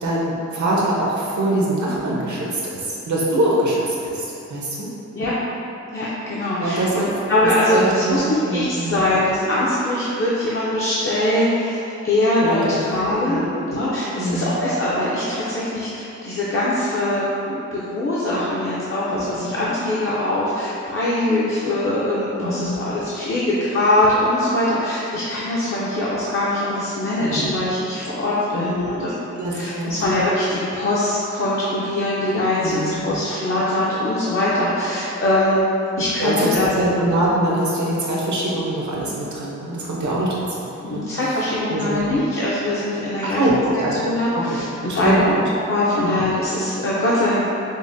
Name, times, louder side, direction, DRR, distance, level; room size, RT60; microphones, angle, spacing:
voice 1, 0.0-4.9 6.6-6.9 7.7-8.2 8.4-8.9 12.4-12.8 13.2-13.4 14.2-14.6 19.1-19.5 22.4-22.8 27.2-27.6 28.6-28.9 29.4-30.1 32.6-33.0 36.2-41.4 41.7-42.1 43.2-43.9 44.3-44.6 44.9-45.4 46.0-46.2, right 1 dB, 75° right, -5 dB, 0.8 m, -23 dB
voice 2, 5.9-8.2 8.5-29.1 29.5-35.6 36.0-36.7 40.8-43.4 44.0-47.4, left 1 dB, 45° left, -8 dB, 0.5 m, -22 dB
5.4 x 2.1 x 2.6 m, 2.9 s
wide cardioid pair, 110°, 29 cm